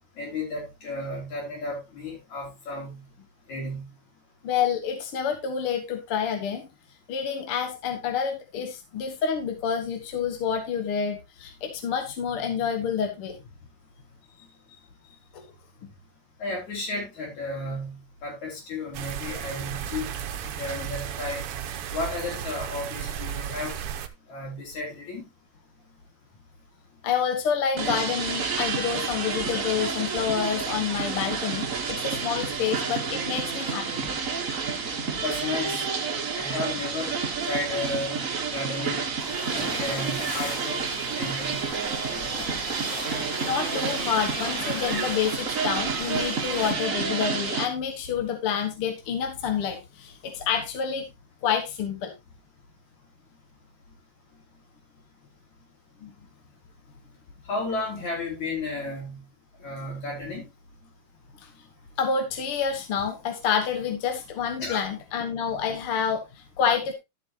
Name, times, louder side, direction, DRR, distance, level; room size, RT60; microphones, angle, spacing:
voice 1, 0.2-3.0 3.5-3.8 16.4-17.9 18.2-20.1 20.4-21.4 21.9-23.7 24.3-25.2 35.2-35.9 36.3-37.1 37.4-38.2 38.5-39.0 39.5-41.6 57.5-59.2 59.6-60.5 64.6-64.8, left 2 dB, 75° left, -1 dB, 6.1 m, -33 dB
voice 2, 4.4-6.7 7.1-13.4 15.3-15.4 15.8-15.9 27.0-34.1 43.4-51.0 51.4-52.1 56.0-56.1 61.4-61.5 62.0-66.9, left 7 dB, 55° left, 5 dB, 1.9 m, -28 dB
sound 1, 18.9-24.1, right 9 dB, 65° right, 1.5 m, -34 dB
sound 2, 27.8-47.7, right 5 dB, 45° right, 1.1 m, -29 dB
sound 3, 39.2-46.7, left 2 dB, 40° left, 3.4 m, -39 dB
12.0 x 8.1 x 2.9 m, 0.22 s
omnidirectional pair, 3.3 m